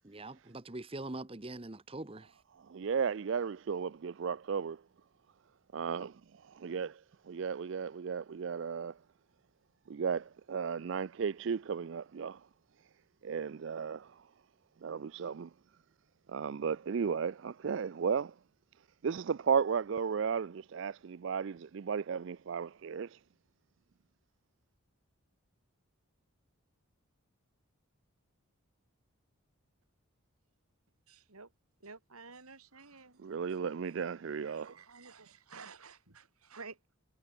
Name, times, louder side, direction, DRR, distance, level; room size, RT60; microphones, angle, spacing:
voice 1, 0.0-2.4, right 2 dB, 25° right, 1.0 m, -43 dB
voice 2, 2.7-4.8 5.7-6.1 6.6-6.9 7.3-9.0 9.9-12.4 13.2-14.2 14.8-15.5 16.3-18.3 19.0-23.2 33.2-34.7, right 6 dB, 60° right, 0.4 m, -34 dB
voice 3, 31.1-31.5 31.8-33.6 34.3-36.8, right 4 dB, 90° right, 3.4 m, -52 dB
head